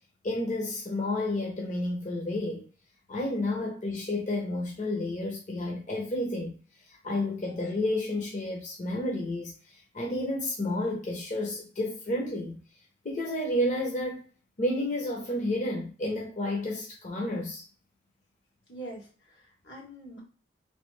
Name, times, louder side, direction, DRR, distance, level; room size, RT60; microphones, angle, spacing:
voice 1, 0.2-2.6 3.1-6.5 7.0-9.5 9.9-12.5 13.0-14.2 14.6-17.6, left 1 dB, 45° left, 0.8 m, -31 dB
voice 2, 18.7-20.2, right 2 dB, 85° left, 1.7 m, -44 dB
3.5 x 3.3 x 3.3 m
head